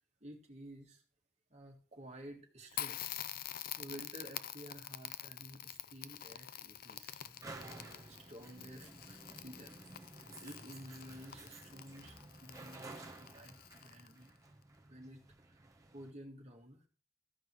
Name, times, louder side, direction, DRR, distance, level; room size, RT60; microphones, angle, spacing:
voice 1, 0.2-1.0 1.5-3.1 3.8-9.8 10.4-14.4 14.8-15.2 15.5-15.6 15.9-16.9, equal, 35° right, 1 dB, 2.0 m, -52 dB
Crackle, 2.7-14.3, left 11 dB, 50° left, 0.4 m, -47 dB
sound 1, 5.5-16.1, right 2 dB, 15° right, 1.0 m, -54 dB
14.0 x 5.3 x 4.7 m, 0.40 s
head